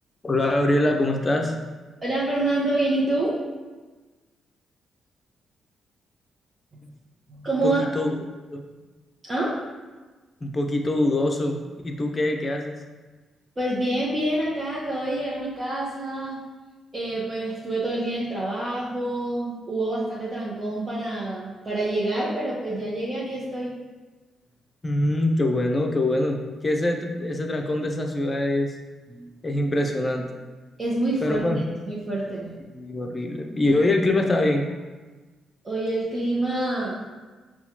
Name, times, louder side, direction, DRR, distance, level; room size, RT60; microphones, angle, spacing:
voice 1, 0.2-1.5 7.6-8.1 8.5-8.7 10.4-11.6 11.8-12.8 24.8-26.4 26.6-28.7 29.4-30.2 31.2-31.6 32.7-34.6, left 1 dB, 35° left, 3 dB, 0.5 m, -23 dB
voice 2, 2.0-3.4 6.7-6.9 7.3-7.9 9.2-9.6 13.6-16.4 16.9-23.8 29.1-29.3 30.8-31.5 31.9-32.5 35.6-37.1, right 2 dB, 35° right, -8 dB, 0.9 m, -27 dB
5.6 x 2.3 x 2.9 m, 1.3 s
hypercardioid pair, 45°, 0 cm